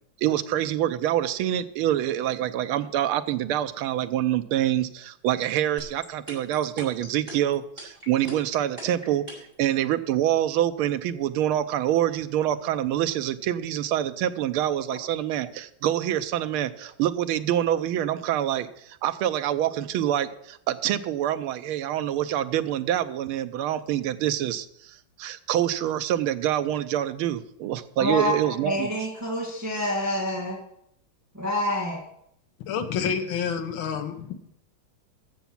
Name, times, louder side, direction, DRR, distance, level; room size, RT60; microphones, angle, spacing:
voice 1, 0.2-28.9, right 11 dB, 85° right, 11 dB, 1.6 m, -26 dB
sound 1, 5.8-9.6, equal, 25° right, 6.5 m, -40 dB
voice 2, 28.0-30.6 31.3-32.0, left 1 dB, 10° right, -3 dB, 1.6 m, -27 dB
voice 3, 32.6-34.3, left 7 dB, 70° left, 6 dB, 1.8 m, -28 dB
14.0 x 7.1 x 5.9 m, 0.74 s
omnidirectional pair, 2.3 m